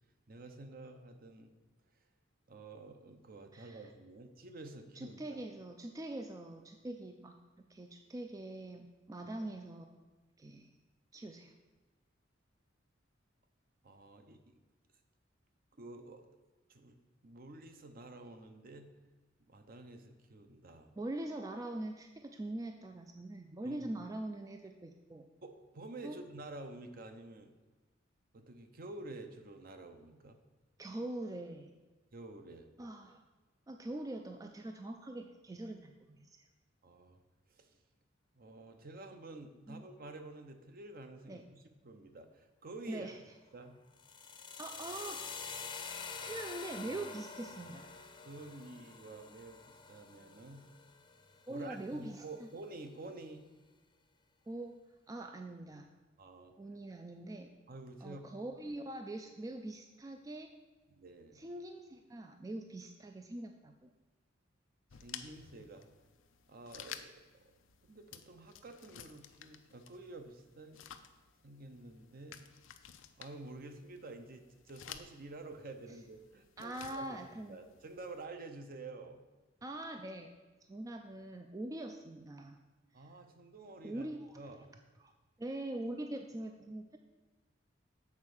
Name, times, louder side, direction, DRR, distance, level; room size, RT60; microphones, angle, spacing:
voice 1, 0.3-1.5 2.5-5.4 9.4-9.5 13.8-14.5 15.8-16.3 16.7-18.9 19.5-20.9 23.6-23.8 25.4-27.5 28.3-30.4 32.1-32.7 36.8-37.2 37.5-37.7 38.4-43.1 43.5-43.8 48.2-50.6 51.5-53.4 56.2-56.5 57.7-58.3 60.9-61.4 65.0-65.9 66.5-67.1 67.8-70.8 71.4-72.4 73.2-77.2 77.5-79.2 82.9-84.1 84.3-84.7, right 2 dB, 50° right, 7 dB, 0.7 m, -50 dB
voice 2, 5.0-9.9 10.4-10.7 11.1-11.5 21.0-25.3 26.0-26.2 30.8-31.7 32.8-33.2 33.7-36.4 39.7-39.8 41.3-41.4 42.9-43.2 44.6-45.2 46.2-47.9 51.5-52.5 54.5-54.7 55.1-55.9 56.6-57.5 58.0-60.6 61.3-63.9 76.6-77.6 79.6-80.3 80.7-82.6 83.0-83.1 83.8-84.4 85.0-85.1 85.4-87.0, right 1 dB, 20° right, 5 dB, 0.3 m, -43 dB
sound 1, 43.9-52.0, left 5 dB, 25° left, 0.6 m, -47 dB
sound 2, 64.9-78.2, left 9 dB, 85° left, 0.5 m, -54 dB
7.4 x 4.3 x 6.3 m, 1.2 s
head